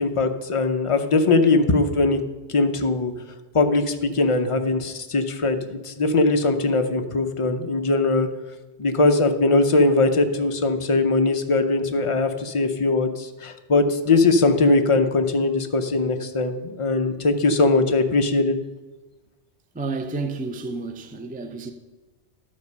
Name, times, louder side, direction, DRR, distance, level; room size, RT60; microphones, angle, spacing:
voice 1, 0.0-2.2 2.5-3.1 3.5-8.3 8.8-18.6, left 3 dB, 35° left, 0.7 m, -20 dB
voice 2, 19.7-21.7, right 3 dB, 15° right, 0.3 m, -30 dB
12.5 x 5.0 x 5.4 m
omnidirectional pair, 1.2 m